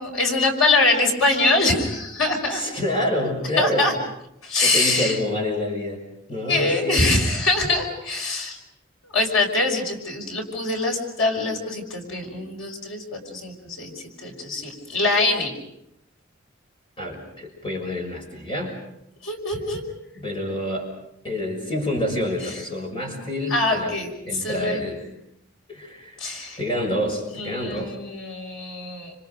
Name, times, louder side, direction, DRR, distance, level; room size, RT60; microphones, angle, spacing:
voice 1, 0.0-2.6 3.6-3.9 4.4-5.2 6.5-8.6 9.1-13.9 14.2-15.5 19.2-19.8 23.5-24.8 26.2-26.6 27.4-29.1, left 2 dB, 85° left, 2 dB, 5.5 m, -23 dB
voice 2, 2.5-3.9 4.6-6.0 6.3-7.1 17.0-18.8 20.1-20.9 21.2-24.0 24.3-25.1 25.7-26.2 26.6-27.9, left 1 dB, 25° left, 2 dB, 6.2 m, -27 dB
29.5 x 27.0 x 5.3 m, 0.79 s
head